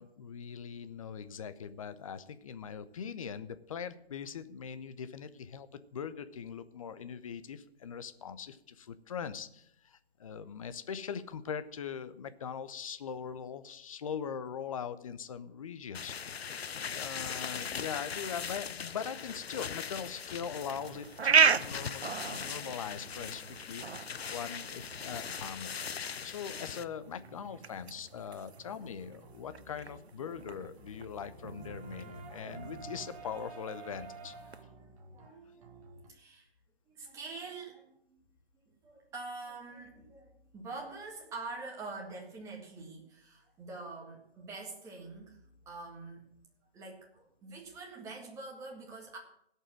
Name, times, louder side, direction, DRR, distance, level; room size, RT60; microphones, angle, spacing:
voice 1, 0.0-34.3, left 7 dB, 35° left, 12 dB, 0.7 m, -41 dB
sound 1, 15.9-26.8, left 7 dB, 70° left, 0.7 m, -40 dB
sound 2, 20.5-34.6, right 6 dB, 80° right, 0.8 m, -35 dB
sound 3, 26.4-36.1, right 3 dB, 30° right, 1.5 m, -51 dB
voice 2, 34.7-35.8 36.1-36.5 36.9-38.2 38.6-46.3 46.7-49.2, right 3 dB, 10° right, -1 dB, 1.8 m, -45 dB
16.5 x 5.6 x 7.5 m, 0.75 s
figure-of-eight pair, 145°, 32 cm